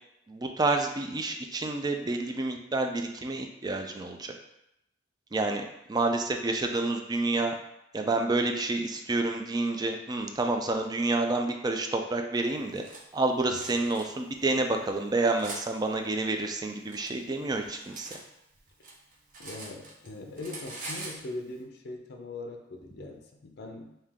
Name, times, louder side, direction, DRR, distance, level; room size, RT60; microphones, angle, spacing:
voice 1, 0.3-4.3 5.3-5.6 5.9-7.5 7.9-12.8 13.1-18.2, right 2 dB, 20° right, 4 dB, 0.4 m, -29 dB
Cutlery silverware, 12.4-13.0 13.5-14.1 14.7-15.6 16.5-18.2 18.5-20.1 20.4-21.2, right 2 dB, 45° right, 0.7 m, -43 dB
voice 2, 19.4-23.9, left 2 dB, 60° left, 3 dB, 0.5 m, -41 dB
3.6 x 2.7 x 3.5 m, 0.84 s
head